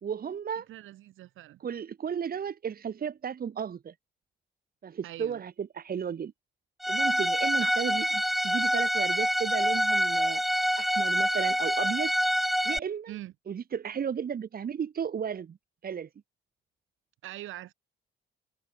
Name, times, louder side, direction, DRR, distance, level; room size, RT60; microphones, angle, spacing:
voice 1, 0.0-0.7 1.6-3.9 4.8-6.3 6.9-10.4 10.8-12.1 12.6-13.1 13.5-15.6 15.8-16.1, right 7 dB, 50° right, 2.2 m, -34 dB
voice 2, 0.7-1.6 5.0-5.4 7.6-7.8 13.1-13.3 17.2-17.7, right 15 dB, 85° right, 7.0 m, -43 dB
Bowed string instrument, 6.8-12.8, equal, ahead, 0.7 m, -26 dB
cardioid pair, 90°, 20 cm